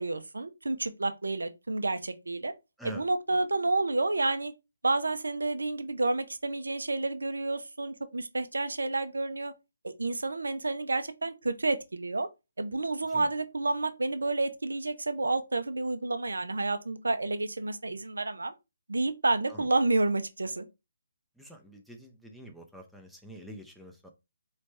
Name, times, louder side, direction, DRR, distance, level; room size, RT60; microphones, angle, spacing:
voice 1, 0.0-2.5 2.8-4.5 4.8-9.5 9.8-12.3 12.6-18.5 18.9-20.6, right 2 dB, 85° right, 0.7 m, -30 dB
voice 2, 2.8-3.4 13.1-13.3 19.5-19.7 21.4-24.1, right 1 dB, ahead, 0.7 m, -47 dB
4.1 x 3.3 x 3.2 m
figure-of-eight pair, 150°, 0 cm